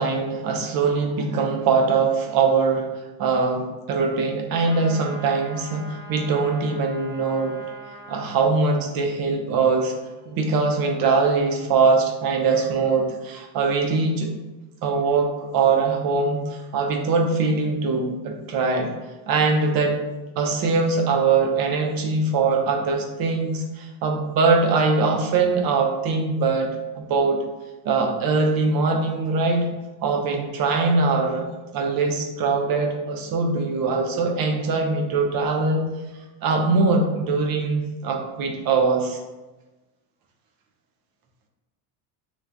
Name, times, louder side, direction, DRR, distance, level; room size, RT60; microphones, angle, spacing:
voice 1, 0.0-2.9 3.2-7.5 8.1-9.9 10.3-14.3 14.8-18.9 19.3-20.0 20.4-26.7 26.9-27.4 27.8-29.7 30.0-31.4 31.7-35.9 36.4-39.2, right 4 dB, 50° right, 3 dB, 0.6 m, -22 dB
sound 1, 4.6-8.5, right 1 dB, 10° right, 1.0 m, -42 dB
3.1 x 2.1 x 3.6 m, 1.1 s
cardioid pair, 115°, 44 cm